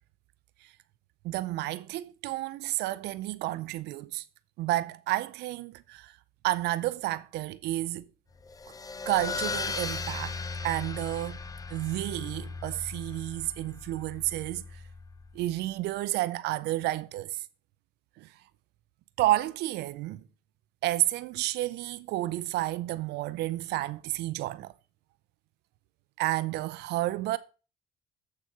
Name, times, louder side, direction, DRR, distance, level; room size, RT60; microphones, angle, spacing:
voice 1, 1.2-4.2 4.6-6.1 6.4-8.0 9.1-10.4 10.6-11.4 11.7-14.6 15.3-17.4 18.2-18.3 19.2-20.2 20.8-24.7 26.2-27.4, right 16 dB, 80° right, 0.5 m, -31 dB
sound 1, 8.4-15.5, left 4 dB, 20° left, 0.6 m, -37 dB
7.7 x 6.6 x 4.7 m
cardioid pair, 110°, 17 cm